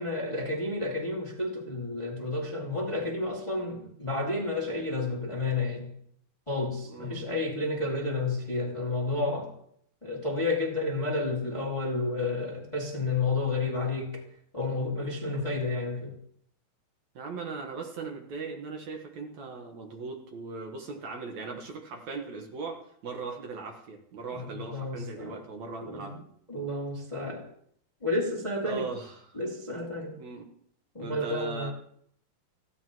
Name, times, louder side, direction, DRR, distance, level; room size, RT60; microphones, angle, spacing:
voice 1, 0.0-5.9 6.5-9.5 10.0-14.2 14.5-16.1 24.3-25.4 25.8-26.2 26.5-27.5 28.0-28.9 29.4-30.2 30.9-31.7, left 2 dB, 10° left, -2 dB, 1.7 m, -31 dB
voice 2, 6.8-7.2 17.2-26.2 28.6-29.4 30.2-30.5 31.0-31.7, right 4 dB, 60° right, 2 dB, 2.4 m, -39 dB
19.5 x 15.5 x 3.1 m, 0.68 s
omnidirectional pair, 4.0 m